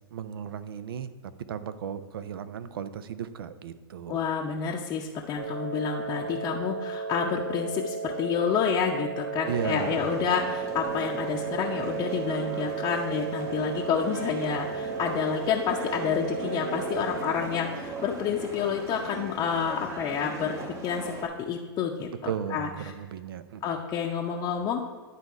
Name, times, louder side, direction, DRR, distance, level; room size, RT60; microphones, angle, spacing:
voice 1, 0.1-4.2 9.5-10.2 22.3-23.7, right 8 dB, 70° right, 13 dB, 0.5 m, -35 dB
voice 2, 4.1-20.6 20.8-22.9 23.6-24.9, left 7 dB, 30° left, -1 dB, 0.6 m, -29 dB
sound 1, 5.4-17.4, right 5 dB, 55° right, 1.0 m, -34 dB
sound 2, 9.5-21.3, right 2 dB, 25° right, 1.1 m, -39 dB
10.0 x 4.1 x 4.6 m, 1.5 s
hypercardioid pair, 110°, 13 cm